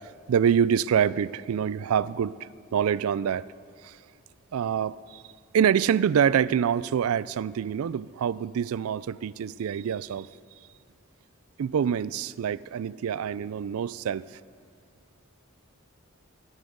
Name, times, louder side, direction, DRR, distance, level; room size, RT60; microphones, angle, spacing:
voice 1, 0.3-2.4 2.7-3.5 3.8-4.0 4.5-5.2 5.5-10.3 11.6-14.3, right 8 dB, 80° right, 19 dB, 0.3 m, -25 dB
15.0 x 7.3 x 7.9 m, 2.2 s
head